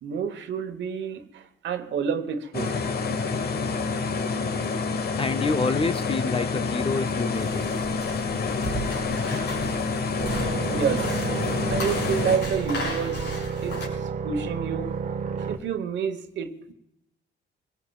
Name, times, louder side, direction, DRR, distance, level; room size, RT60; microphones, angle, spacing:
voice 1, 0.0-2.8 10.7-11.2 11.7-15.0 15.4-16.7, right 7 dB, 65° right, 1.1 m, -29 dB
sound 1, 2.5-12.4, left 4 dB, 50° left, 1.0 m, -28 dB
voice 2, 5.2-7.7, left 4 dB, 25° left, 0.6 m, -27 dB
sound 2, 7.3-13.9, left 1 dB, 70° left, 5.2 m, -35 dB
sound 3, 10.2-15.6, right 6 dB, 40° right, 1.1 m, -31 dB
24.0 x 17.5 x 2.4 m
cardioid pair, 90°, 20 cm